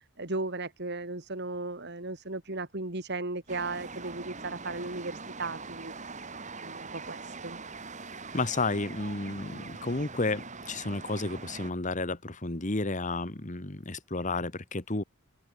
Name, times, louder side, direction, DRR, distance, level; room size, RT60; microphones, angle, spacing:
voice 1, 0.0-6.3 6.6-7.6, right 2 dB, 50° right, 2.7 m, -36 dB
sound 1, 3.5-11.7, right 4 dB, 35° right, 3.6 m, -43 dB
voice 2, 8.3-15.0, left 2 dB, 35° left, 1.6 m, -32 dB
open air
head